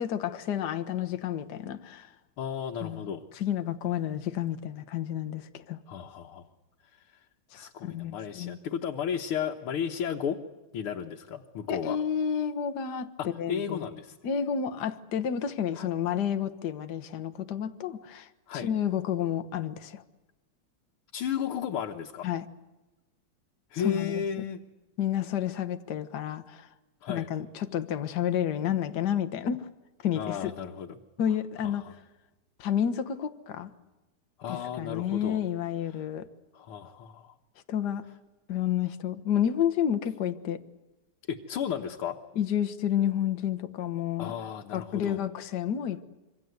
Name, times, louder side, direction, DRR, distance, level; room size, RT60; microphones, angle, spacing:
voice 1, 0.0-2.1 2.8-5.8 7.5-8.6 11.7-13.9 14.2-18.3 18.6-20.0 22.2-22.5 23.7-24.2 25.0-26.7 27.1-29.7 30.0-30.5 31.2-31.8 32.6-33.7 34.5-36.3 37.7-38.0 38.5-40.6 42.3-44.3 44.7-46.0, left 9 dB, 55° left, 1.6 m, -30 dB
voice 2, 2.4-3.2 5.9-6.5 6.9-7.0 7.5-10.4 10.7-12.0 13.2-14.2 15.8-15.9 18.5-18.7 21.1-22.3 23.7-24.6 27.0-27.3 30.2-31.0 31.6-31.9 34.4-35.4 36.5-37.3 41.3-42.2 44.2-45.2, left 8 dB, 80° left, 2.1 m, -34 dB
26.0 x 24.5 x 8.0 m
omnidirectional pair, 2.4 m